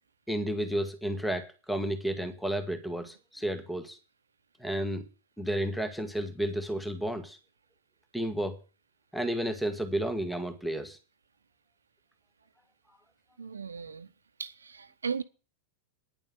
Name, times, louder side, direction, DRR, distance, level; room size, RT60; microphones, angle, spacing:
voice 1, 0.3-4.0 4.6-5.1 5.4-7.4 8.1-8.6 9.1-11.0, right 1 dB, ahead, 1.4 m, -32 dB
voice 2, 13.4-14.1 14.4-15.2, right 6 dB, 75° right, 0.9 m, -36 dB
10.0 x 7.1 x 7.6 m
figure-of-eight pair, 90°, 0 cm